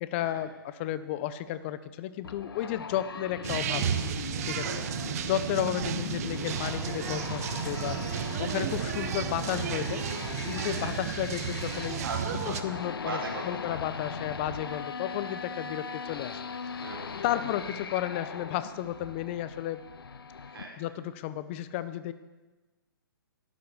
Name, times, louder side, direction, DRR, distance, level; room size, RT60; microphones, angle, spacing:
voice 1, 0.0-3.9 4.4-4.6 5.2-10.0 10.5-12.0 12.5-13.2 13.4-16.4 17.2-19.8 20.8-22.1, left 12 dB, 30° left, 13 dB, 0.8 m, -33 dB
sound 1, 2.2-20.6, left 5 dB, 75° left, 1.0 m, -39 dB
sound 2, 3.4-12.6, right 10 dB, 40° right, 0.9 m, -33 dB
voice 2, 12.0-13.8 14.0-14.2 15.0-15.1 16.7-17.4 20.4-20.8, right 3 dB, 70° right, 0 dB, 4.9 m, -40 dB
12.0 x 11.0 x 7.1 m, 1.2 s
hypercardioid pair, 145°, 12 cm